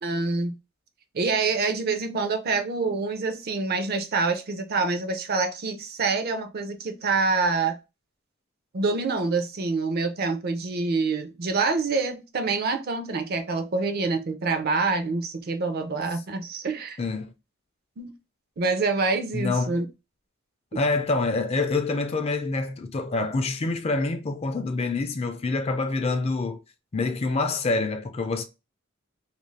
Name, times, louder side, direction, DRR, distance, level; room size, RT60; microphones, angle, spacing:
voice 1, 0.0-0.6 1.1-7.7 8.7-17.0 18.0-18.1 18.6-19.8 20.7-20.8, right 4 dB, 50° right, 0.5 m, -26 dB
voice 2, 17.0-17.3 19.3-19.8 20.7-26.6 26.9-28.4, left 3 dB, 30° left, 0.4 m, -26 dB
2.5 x 2.3 x 3.1 m
head